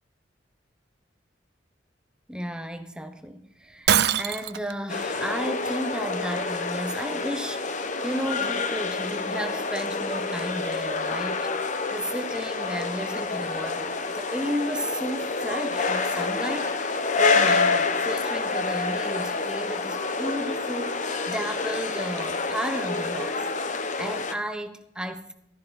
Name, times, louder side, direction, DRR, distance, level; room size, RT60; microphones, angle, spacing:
voice 1, 2.3-16.8 17.1-23.5 23.7-25.3, equal, 5° right, 1.0 m, -33 dB
Shatter, 3.9-4.7, right 9 dB, 60° right, 0.6 m, -22 dB
amb gare centrale, 4.9-24.3, left 4 dB, 40° left, 0.9 m, -28 dB
14.5 x 13.0 x 4.1 m
head